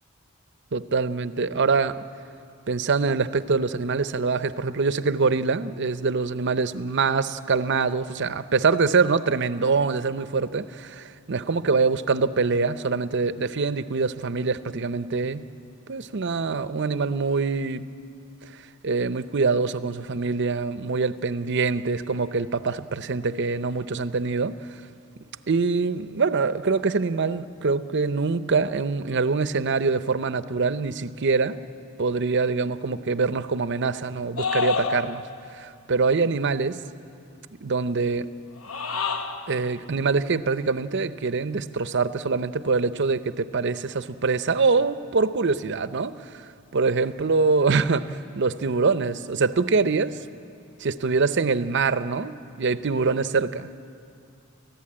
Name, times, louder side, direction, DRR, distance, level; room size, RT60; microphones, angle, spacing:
voice 1, 0.7-2.0 2.7-15.4 15.9-17.8 18.4-24.8 25.5-31.6 32.0-35.2 35.5-36.8 37.6-38.3 39.5-46.4 46.7-48.0 48.3-50.3 50.8-53.7, right 4 dB, 55° right, 0.7 m, -24 dB
sound 1, 34.4-35.5 38.6-39.6, left 5 dB, 75° left, 1.1 m, -28 dB
30.0 x 14.5 x 8.7 m
head